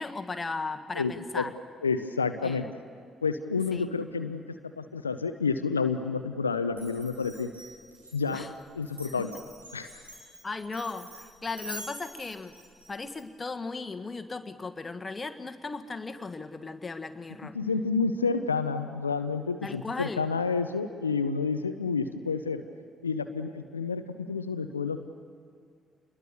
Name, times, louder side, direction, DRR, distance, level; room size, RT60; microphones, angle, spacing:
voice 1, 0.0-1.5 2.4-2.7 3.7-3.9 8.3-8.5 10.4-12.5 12.9-17.6 19.6-20.2, left 3 dB, 25° left, 8 dB, 1.6 m, -36 dB
voice 2, 1.0-1.5 1.8-2.7 3.2-4.4 4.8-7.5 8.1-8.5 8.7-9.3 9.7-9.9 17.5-22.6 23.0-25.0, left 5 dB, 85° left, 9 dB, 0.6 m, -29 dB
Glass, 6.7-13.2, equal, 90° right, 5.1 m, -46 dB
26.0 x 21.0 x 6.9 m, 2.2 s
figure-of-eight pair, 45°, 0 cm